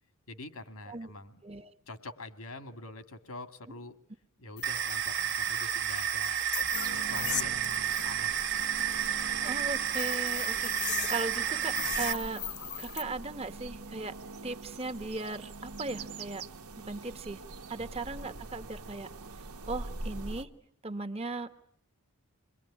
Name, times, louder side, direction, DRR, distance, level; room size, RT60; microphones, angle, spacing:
voice 1, 0.3-1.4 1.9-4.0 4.4-6.4 6.9-8.6 9.2-9.4 17.8-17.9, left 2 dB, 75° left, 9 dB, 2.1 m, -45 dB
sound 1, 4.6-13.0, left 10 dB, 45° left, 1.2 m, -40 dB
sound 2, 4.6-12.1, right 10 dB, 50° right, 1.1 m, -31 dB
sound 3, 6.7-20.4, right 2 dB, 85° right, 1.4 m, -44 dB
voice 2, 9.3-12.4 12.8-14.2 14.4-16.4 16.8-17.4 17.7-19.1 19.7-20.5 20.8-21.6, right 3 dB, 25° right, 10 dB, 1.1 m, -38 dB
27.5 x 22.0 x 9.9 m, 0.70 s
head